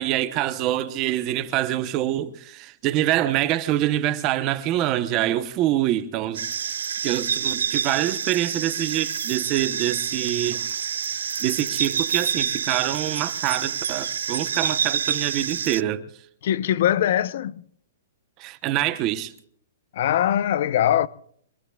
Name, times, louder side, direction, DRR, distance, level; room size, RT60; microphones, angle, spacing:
voice 1, 0.0-6.8 7.0-10.6 11.4-16.0 18.4-19.3, right 13 dB, 25° right, 0.9 m, -25 dB
sound 1, 6.3-15.8, right 7 dB, 90° right, 0.5 m, -28 dB
voice 2, 16.4-17.6 19.9-21.1, left 11 dB, 55° left, 0.7 m, -21 dB
24.5 x 21.5 x 2.4 m
hypercardioid pair, 160°, 0 cm